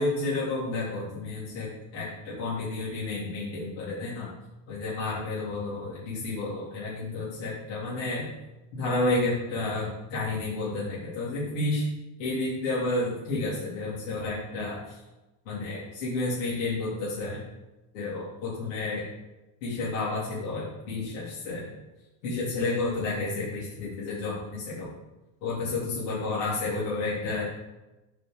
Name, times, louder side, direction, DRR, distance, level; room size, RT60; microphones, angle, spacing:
voice 1, 0.0-4.3 4.7-8.3 8.7-11.9 12.2-15.0 15.5-17.4 17.9-19.0 19.6-21.7 22.2-25.0 25.4-27.4, left 2 dB, 80° left, -9 dB, 3.8 m, -31 dB
8.0 x 5.5 x 7.0 m, 1.0 s
cardioid pair, 175°, 37 cm